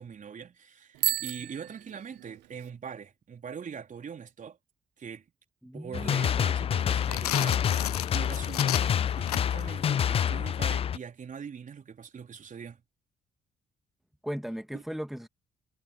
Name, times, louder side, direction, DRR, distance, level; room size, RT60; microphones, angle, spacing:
voice 1, 0.0-4.6 5.0-5.2 5.7-12.8 14.7-14.8, right 7 dB, 45° right, 4.1 m, -42 dB
Bicycle bell, 0.9-2.7, right 18 dB, 65° right, 1.2 m, -33 dB
voice 2, 5.6-6.3 14.2-15.3, equal, ahead, 2.8 m, -37 dB
sound 1, 5.9-11.0, left 8 dB, 30° left, 0.4 m, -27 dB
sound 2, 6.8-9.7, left 15 dB, 80° left, 0.6 m, -34 dB
figure-of-eight pair, 45°, 19 cm